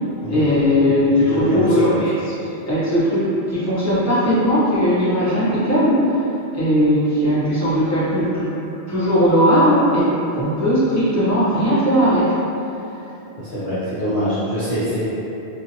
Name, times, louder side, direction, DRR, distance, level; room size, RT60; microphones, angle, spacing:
voice 1, 0.3-2.1 2.7-6.2 6.5-8.5 8.9-12.4, equal, 20° left, -11 dB, 0.6 m, -18 dB
voice 2, 1.2-1.9 13.4-15.0, equal, 60° left, -11 dB, 0.7 m, -23 dB
2.7 x 2.4 x 2.7 m, 3.0 s
omnidirectional pair, 1.2 m